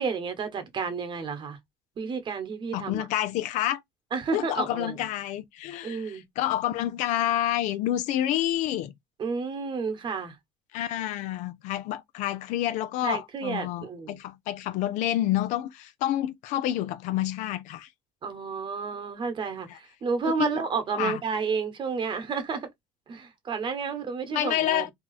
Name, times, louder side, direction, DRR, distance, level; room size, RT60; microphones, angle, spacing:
voice 1, 0.0-1.6 2.0-3.0 4.1-5.0 5.8-6.2 9.2-10.4 13.0-14.2 18.2-22.7 23.1-24.8, right 5 dB, 40° right, 1.2 m, -31 dB
voice 2, 2.7-3.8 4.3-8.9 10.7-17.9 19.7-19.8 20.2-20.5 20.9-21.2 24.3-24.9, left 13 dB, 70° left, 0.6 m, -28 dB
2.9 x 2.3 x 4.0 m
supercardioid pair, 105°, 13 cm